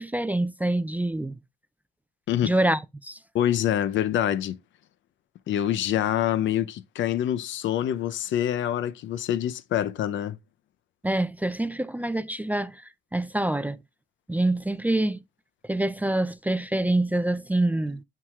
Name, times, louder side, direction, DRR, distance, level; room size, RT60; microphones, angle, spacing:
voice 1, 0.0-1.4 2.4-3.2 11.0-13.8 14.3-15.2 15.6-18.0, right 1 dB, 10° right, 0.4 m, -26 dB
voice 2, 3.3-4.5 5.5-10.4, left 11 dB, 70° left, 0.6 m, -26 dB
8.8 x 4.7 x 2.3 m
cardioid pair, 90°, 20 cm